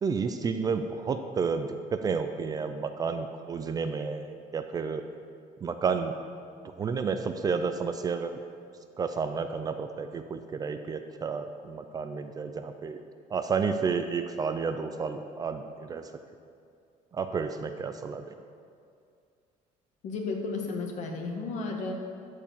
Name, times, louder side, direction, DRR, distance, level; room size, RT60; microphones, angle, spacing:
voice 1, 0.0-5.0 5.6-6.2 6.6-8.4 9.0-13.0 13.3-16.1 17.1-18.2, right 5 dB, 25° right, 8 dB, 0.4 m, -31 dB
voice 2, 20.0-21.9, left 3 dB, 55° left, 1 dB, 1.7 m, -33 dB
13.5 x 4.7 x 7.3 m, 2.4 s
cardioid pair, 150°, 15 cm